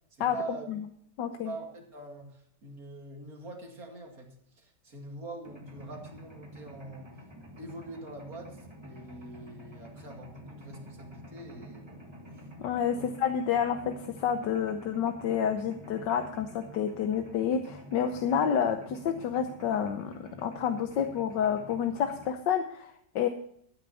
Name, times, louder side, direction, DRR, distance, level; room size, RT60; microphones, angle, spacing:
voice 1, 0.1-0.7 1.4-7.2 7.6-12.0 12.3-12.5 12.9-13.1, right 2 dB, 55° right, 1 dB, 2.8 m, -44 dB
voice 2, 1.2-1.5 12.6-23.3, left 8 dB, 75° left, 7 dB, 1.5 m, -29 dB
Mechanisms, 5.4-22.3, equal, 15° right, 1.5 m, -49 dB
13.5 x 9.8 x 4.1 m, 0.70 s
omnidirectional pair, 1.9 m